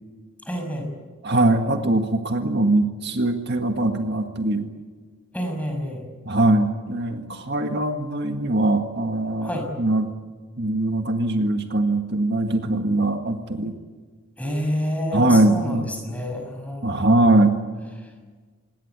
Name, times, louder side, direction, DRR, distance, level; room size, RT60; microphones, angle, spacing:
voice 1, 0.5-0.9 5.3-6.1 9.4-9.7 14.4-17.1, equal, 5° left, 3 dB, 6.3 m, -28 dB
voice 2, 1.2-4.7 6.3-10.1 10.6-13.7 15.1-15.9 16.8-17.6, right 2 dB, 55° right, 5 dB, 1.9 m, -21 dB
27.0 x 21.0 x 8.3 m, 1.4 s
head